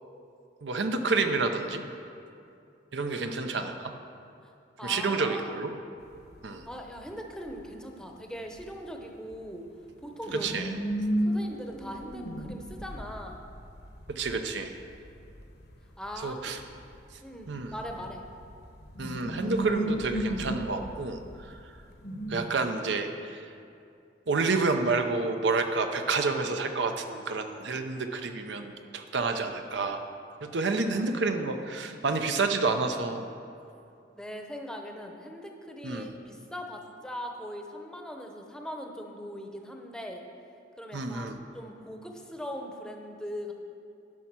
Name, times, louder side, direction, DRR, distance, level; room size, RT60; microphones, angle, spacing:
voice 1, 0.6-1.8 2.9-3.9 4.8-5.7 6.4-6.6 10.3-10.7 14.1-14.8 16.2-16.6 17.5-17.7 19.0-21.2 21.5-21.6 22.3-23.4 24.3-30.0 30.4-33.2 35.8-36.1 40.9-41.4, right 3 dB, 75° right, 6 dB, 0.7 m, -29 dB
voice 2, 4.8-5.6 6.7-9.7 10.0-10.5 11.3-13.4 16.0-16.4 17.2-18.2 34.2-40.2 40.8-43.5, equal, 5° left, 2 dB, 0.8 m, -40 dB
sound 1, 6.0-6.4 6.7-7.5 8.6-8.7 9.0-9.1 9.3-9.4 10.1-17.3 17.6-22.5, right 1 dB, 65° left, 1.0 m, -34 dB
11.0 x 5.6 x 6.0 m, 2.5 s
head